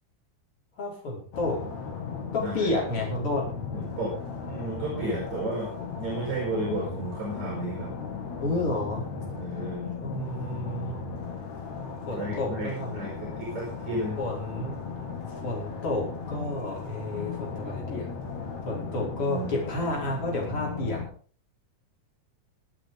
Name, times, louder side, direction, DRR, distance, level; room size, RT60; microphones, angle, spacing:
voice 1, 0.8-1.6 2.3-3.5 8.4-9.0 10.0-11.0 12.1-13.1 14.2-14.8 15.4-18.1 18.7-21.0, left 2 dB, 40° left, -3 dB, 5.9 m, -30 dB
sound 1, 1.3-21.1, left 5 dB, 60° left, 3.5 m, -36 dB
voice 2, 3.7-4.1 4.4-5.7 6.0-7.9 9.4-9.9 12.1-14.2 19.1-19.5, right 2 dB, 60° right, -5 dB, 6.5 m, -33 dB
23.5 x 9.0 x 3.9 m, 0.42 s
omnidirectional pair, 3.7 m